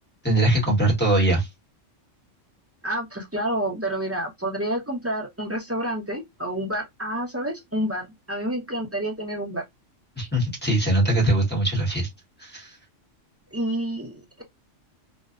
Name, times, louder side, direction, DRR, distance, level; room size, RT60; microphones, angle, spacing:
voice 1, 0.2-1.5 10.2-12.1 12.4-12.8, right 1 dB, 10° left, 1.0 m, -21 dB
voice 2, 2.8-9.6 13.5-14.4, right 1 dB, 15° right, 0.5 m, -29 dB
2.7 x 2.2 x 2.4 m
omnidirectional pair, 1.3 m